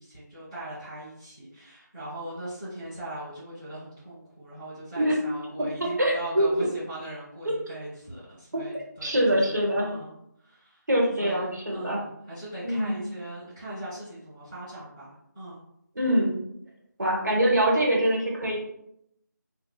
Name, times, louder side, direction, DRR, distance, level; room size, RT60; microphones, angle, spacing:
voice 1, 0.0-10.8 11.2-15.6, right 1 dB, 5° right, -20 dB, 0.7 m, -40 dB
voice 2, 6.0-6.5 8.5-8.6 9.0-9.9 10.9-12.0 12.6-13.0 16.0-16.4 17.0-18.6, right 1 dB, 65° right, -3 dB, 0.9 m, -24 dB
2.7 x 2.0 x 2.3 m, 0.77 s
figure-of-eight pair, 175°, 10 cm